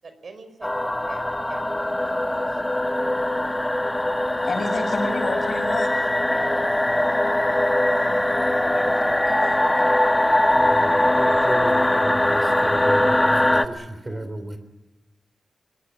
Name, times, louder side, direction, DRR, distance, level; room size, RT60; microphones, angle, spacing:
voice 1, 0.0-2.6 3.0-3.3 4.4-4.6 5.1-5.2 6.3-9.1, right 4 dB, 55° right, 9 dB, 5.1 m, -43 dB
sound 1, 0.6-13.7, left 1 dB, 10° left, 1.2 m, -21 dB
voice 2, 4.4-6.1 8.7-8.8 9.2-9.9 12.4-12.8 14.0-14.2, left 3 dB, 60° left, 6 dB, 6.4 m, -31 dB
voice 3, 10.6-14.6, right 1 dB, 25° right, 10 dB, 3.1 m, -34 dB
21.0 x 21.0 x 10.0 m, 1.2 s
wide cardioid pair, 105°, 0 cm